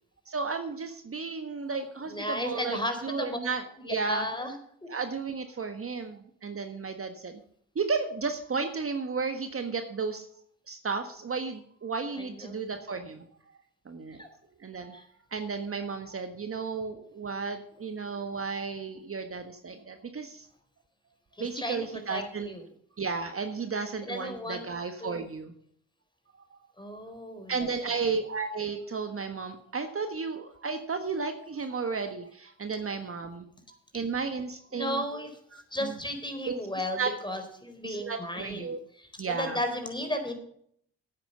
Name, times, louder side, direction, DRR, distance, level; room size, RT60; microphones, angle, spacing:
voice 1, 0.3-4.3 4.9-7.4 7.7-10.3 10.7-13.2 13.9-14.2 14.6-15.0 15.3-20.5 21.4-22.5 23.0-25.5 27.5-33.5 33.9-35.0 35.5-36.0 36.5-36.7 37.0-37.1 37.8-38.8 39.2-39.6, right 4 dB, 40° right, 7 dB, 1.5 m, -33 dB
voice 2, 2.1-3.4 3.8-4.5 4.8-4.9 12.2-12.7 14.2-14.3 14.9-15.0 21.4-22.6 24.0-24.7 25.0-25.3 26.8-27.7 27.9-28.1 34.7-35.3 35.7-38.7 39.0-40.3, equal, 15° left, 6 dB, 4.2 m, -34 dB
9.7 x 9.0 x 6.7 m, 0.65 s
hypercardioid pair, 50°, 36 cm